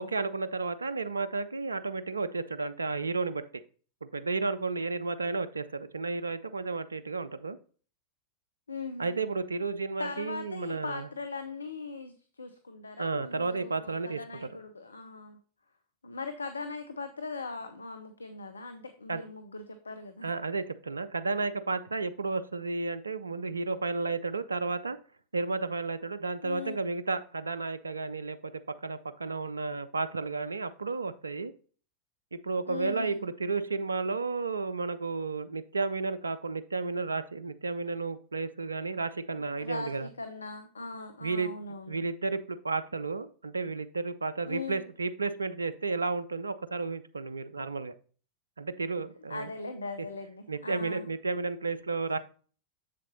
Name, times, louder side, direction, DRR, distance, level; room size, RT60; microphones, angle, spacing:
voice 1, 0.0-3.4 4.0-7.6 9.0-11.1 13.0-14.2 19.1-19.2 20.2-25.0 25.3-28.5 28.8-31.5 32.3-40.1 41.2-41.5 41.9-47.9 48.6-49.5 50.5-52.2, right 3 dB, 75° right, 14 dB, 0.4 m, -32 dB
voice 2, 8.7-9.3 10.0-15.4 16.0-20.3 26.4-26.8 32.7-33.2 39.6-42.0 44.5-44.8 49.3-51.1, left 3 dB, 75° left, 8 dB, 0.5 m, -40 dB
7.4 x 7.0 x 2.7 m, 0.41 s
figure-of-eight pair, 90°, 0 cm